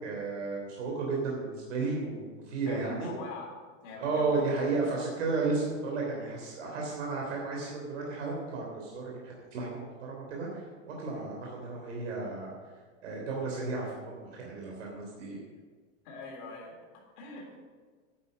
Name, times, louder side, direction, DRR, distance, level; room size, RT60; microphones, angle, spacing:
voice 1, 0.0-3.1 4.0-12.5 13.0-15.4, right 3 dB, 65° right, -2 dB, 3.5 m, -33 dB
voice 2, 2.7-3.5 3.8-4.8 16.0-17.6, left 3 dB, 40° left, -1 dB, 3.5 m, -43 dB
11.0 x 9.0 x 6.4 m, 1.5 s
supercardioid pair, 175°, 38 cm